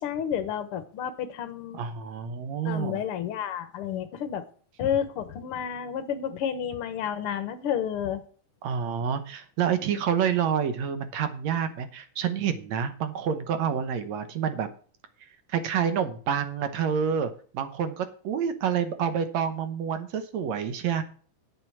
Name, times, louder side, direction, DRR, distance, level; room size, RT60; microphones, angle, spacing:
voice 1, 0.0-1.8 2.6-4.4 4.8-8.2, left 9 dB, 70° left, 11 dB, 1.3 m, -30 dB
voice 2, 1.7-3.0 8.6-14.7 15.5-21.0, right 8 dB, 65° right, 11 dB, 2.1 m, -28 dB
9.1 x 7.6 x 6.2 m, 0.43 s
omnidirectional pair, 3.6 m